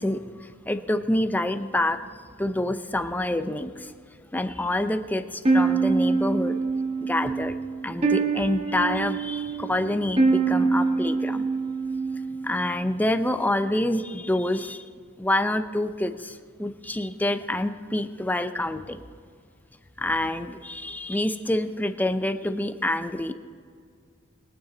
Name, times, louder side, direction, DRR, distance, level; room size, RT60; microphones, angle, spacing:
voice 1, 0.0-3.9 4.3-6.6 7.0-7.6 7.8-11.5 12.4-14.9 15.2-19.0 20.0-23.3, left 1 dB, 10° left, 8 dB, 0.5 m, -27 dB
sound 1, 5.4-12.6, right 4 dB, 30° right, 1.5 m, -25 dB
21.5 x 9.5 x 3.9 m, 2.2 s
head